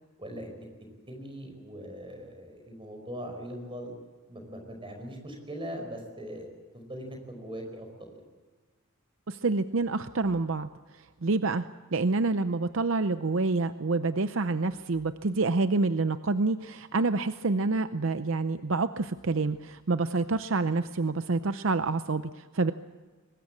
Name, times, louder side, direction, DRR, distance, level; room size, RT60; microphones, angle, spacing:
voice 1, 0.2-0.7 1.1-3.9 4.3-6.5 6.7-8.2, equal, 25° right, 3 dB, 5.0 m, -40 dB
voice 2, 9.3-22.7, right 3 dB, 60° right, 11 dB, 0.6 m, -28 dB
23.5 x 19.5 x 8.6 m, 1.4 s
head